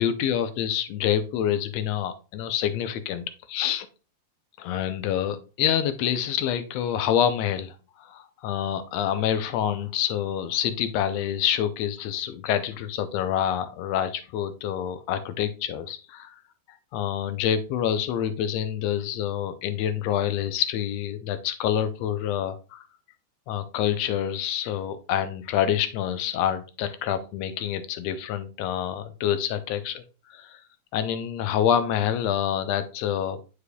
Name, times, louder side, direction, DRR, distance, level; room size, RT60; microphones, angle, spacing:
voice 1, 0.0-3.9 4.6-16.3 16.9-22.9 23.5-30.6 30.9-33.4, left 9 dB, 75° left, 10 dB, 1.6 m, -27 dB
9.6 x 5.0 x 2.2 m, 0.34 s
omnidirectional pair, 3.3 m